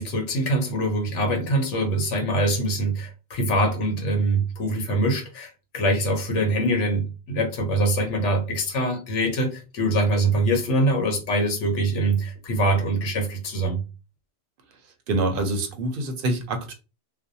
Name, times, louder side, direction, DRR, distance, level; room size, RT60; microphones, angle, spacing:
voice 1, 0.0-13.8, right 1 dB, 80° left, 1.1 m, -24 dB
voice 2, 15.1-16.7, right 2 dB, 60° right, 0.7 m, -26 dB
2.5 x 2.0 x 2.6 m
omnidirectional pair, 1.2 m